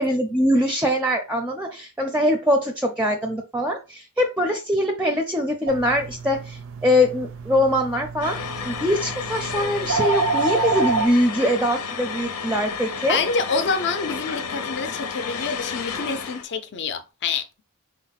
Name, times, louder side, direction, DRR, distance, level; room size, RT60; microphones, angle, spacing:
voice 1, 0.0-13.2, equal, 5° right, 0.5 m, -23 dB
sound 1, 5.7-11.1, right 4 dB, 60° right, 0.5 m, -28 dB
sound 2, 8.2-16.4, left 6 dB, 85° left, 0.7 m, -31 dB
voice 2, 13.1-17.4, left 4 dB, 55° left, 0.5 m, -27 dB
4.4 x 2.1 x 4.0 m
head